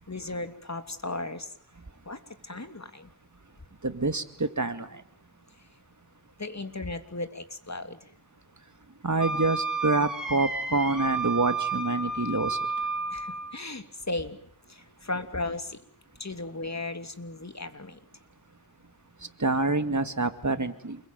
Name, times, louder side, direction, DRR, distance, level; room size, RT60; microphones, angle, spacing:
voice 1, 0.1-1.5 2.1-3.1 6.4-8.0 13.1-14.4 14.7-15.8 16.2-18.0, left 2 dB, 45° left, 8 dB, 2.9 m, -36 dB
voice 2, 3.8-5.0 9.0-12.6 19.4-21.0, right 3 dB, 45° right, 9 dB, 2.3 m, -27 dB
Wind instrument woodwind instrument, 9.2-13.6, right 3 dB, ahead, 7.7 m, -31 dB
28.5 x 21.5 x 9.3 m, 0.66 s
wide cardioid pair, 45°, 39 cm